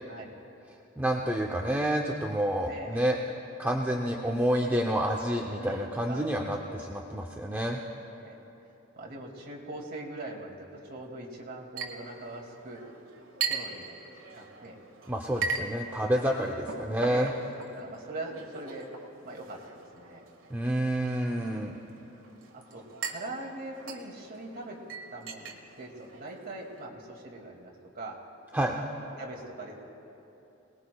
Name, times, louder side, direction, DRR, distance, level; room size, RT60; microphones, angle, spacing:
voice 1, 1.0-3.2 3.6-7.8 15.1-17.3 20.5-21.8 28.5-28.8, right 1 dB, 10° right, 0 dB, 0.6 m, -29 dB
voice 2, 2.6-3.0 5.5-6.9 7.5-7.6 8.2-8.4 9.0-12.8 13.5-13.9 14.3-14.7 15.3-15.6 15.9-17.4 17.7-18.8 19.2-19.6 19.9-20.2 22.5-24.8 25.1-28.2 28.8-28.9 29.2-29.7, right 2 dB, 50° right, -1 dB, 2.3 m, -42 dB
Chink clink, 11.8-26.8, right 5 dB, 80° right, 1.5 m, -40 dB
26.5 x 19.5 x 2.3 m, 2.9 s
head